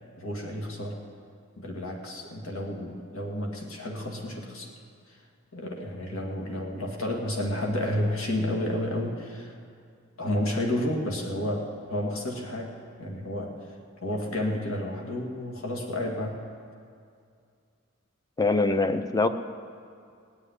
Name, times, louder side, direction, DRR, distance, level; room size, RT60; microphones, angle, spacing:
voice 1, 0.2-1.0 1.6-4.7 5.1-5.2 5.5-9.6 10.2-12.7 13.0-13.6 14.0-16.4, left 1 dB, 75° left, 0 dB, 2.1 m, -31 dB
voice 2, 18.4-19.3, left 3 dB, 20° left, 9 dB, 0.6 m, -23 dB
19.0 x 7.3 x 9.8 m, 2.4 s
head